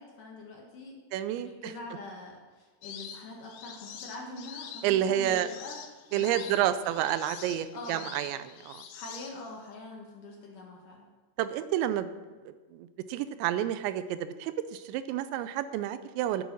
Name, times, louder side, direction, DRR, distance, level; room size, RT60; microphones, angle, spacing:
voice 1, 0.0-1.0 1.3-5.8 6.1-6.7 7.7-8.2 8.9-11.0, left 2 dB, 60° left, -1 dB, 2.5 m, -44 dB
voice 2, 1.1-1.7 4.8-5.5 6.1-8.8 11.4-12.1 12.7-16.4, right 11 dB, 85° right, 12 dB, 2.9 m, -30 dB
sound 1, 2.8-9.7, left 8 dB, 85° left, 3.3 m, -45 dB
12.0 x 7.1 x 6.2 m, 1.4 s
omnidirectional pair, 5.1 m